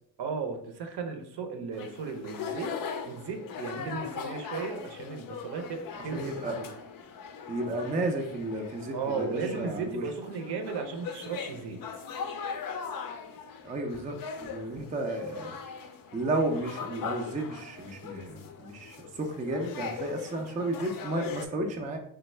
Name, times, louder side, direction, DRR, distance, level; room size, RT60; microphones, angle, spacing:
voice 1, 0.2-2.7 3.1-6.7 8.9-11.8, right 5 dB, 55° right, 5 dB, 0.7 m, -35 dB
sound 1, 1.7-21.5, left 6 dB, 45° left, 0.5 m, -40 dB
voice 2, 6.1-6.6 7.5-10.1 13.6-14.2 14.5-15.6 16.1-22.0, right 2 dB, 15° right, 2 dB, 0.4 m, -32 dB
3.2 x 2.0 x 3.2 m, 0.68 s
supercardioid pair, 65°, 49 cm